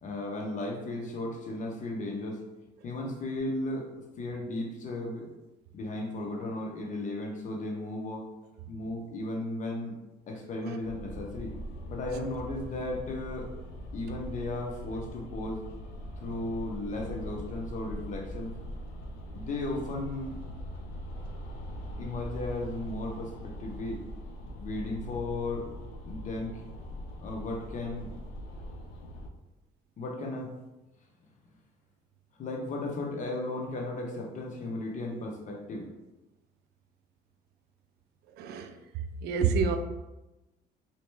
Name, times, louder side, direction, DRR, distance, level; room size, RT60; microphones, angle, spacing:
voice 1, 0.0-2.4 2.8-3.9 4.2-5.3 5.7-8.3 8.7-10.0 10.3-11.6 11.9-13.5 13.9-15.6 16.2-18.5 19.3-20.4 22.0-24.0 24.6-25.7 26.1-26.7 27.2-28.1 30.0-30.5 32.4-35.9, left 2 dB, 45° left, 0 dB, 0.9 m, -35 dB
sound 1, 10.8-29.3, equal, 75° left, 0.6 m, -41 dB
voice 2, 38.3-38.8 39.2-39.8, right 5 dB, 75° right, 7 dB, 0.4 m, -28 dB
3.1 x 2.9 x 3.3 m, 1.0 s
cardioid pair, 110°, 17 cm